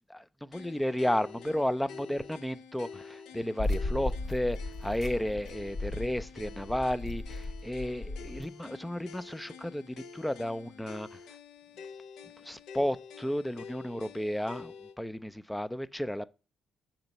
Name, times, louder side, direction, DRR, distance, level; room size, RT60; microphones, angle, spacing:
voice 1, 0.1-11.2 12.4-16.2, equal, 5° left, 0.4 m, -33 dB
sound 1, 0.5-15.0, left 5 dB, 85° left, 0.5 m, -48 dB
sound 2, 3.6-8.4, left 2 dB, 55° left, 1.3 m, -36 dB
6.7 x 3.0 x 5.3 m
cardioid pair, 90°, 0 cm